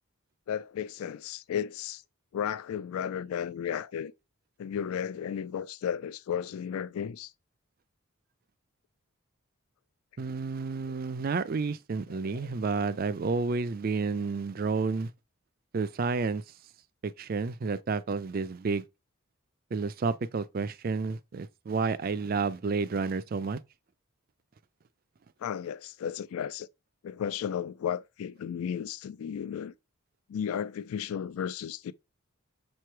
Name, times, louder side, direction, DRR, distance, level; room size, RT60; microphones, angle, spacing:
voice 1, 0.5-2.0 2.3-4.1 4.6-7.3 10.2-10.4 10.9-11.0 12.1-12.5 25.4-26.7 27.0-29.7 30.3-31.9, left 8 dB, 75° left, 0.3 m, -34 dB
voice 2, 10.2-15.1 15.7-16.4 17.0-18.8 19.7-23.6, right 4 dB, 40° right, 0.4 m, -30 dB
6.6 x 3.2 x 4.5 m
head